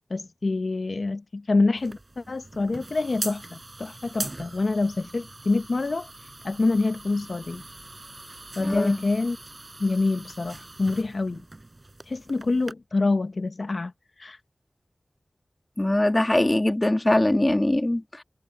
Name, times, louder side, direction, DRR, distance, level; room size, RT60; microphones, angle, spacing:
voice 1, 0.1-6.1 6.4-7.6 8.6-9.4 9.8-11.4 12.1-13.9 14.2-14.4, left 3 dB, 65° left, 0.9 m, -26 dB
sound 1, 1.8-12.7, right 2 dB, 40° right, 6.2 m, -41 dB
voice 2, 8.6-9.0 15.8-18.2, left 1 dB, 25° left, 1.7 m, -22 dB
wide cardioid pair, 50°, 0 cm